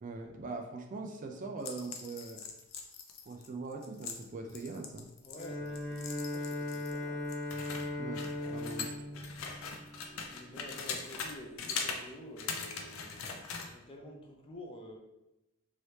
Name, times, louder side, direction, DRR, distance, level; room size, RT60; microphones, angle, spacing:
voice 1, 0.0-2.4 3.2-5.1 8.0-8.2 8.5-8.9, right 3 dB, 35° right, 3 dB, 0.3 m, -41 dB
sound 1, 1.6-7.0 7.3-11.3 11.6-12.0 12.4-13.7, left 5 dB, 75° left, 0.5 m, -41 dB
voice 2, 5.2-6.0 6.3-7.3 8.4-9.3 10.1-13.2 13.6-15.0, left 1 dB, 25° left, 1 dB, 0.5 m, -49 dB
Bowed string instrument, 5.4-10.4, left 2 dB, 40° left, 1.2 m, -38 dB
3.1 x 2.7 x 3.2 m, 0.92 s
head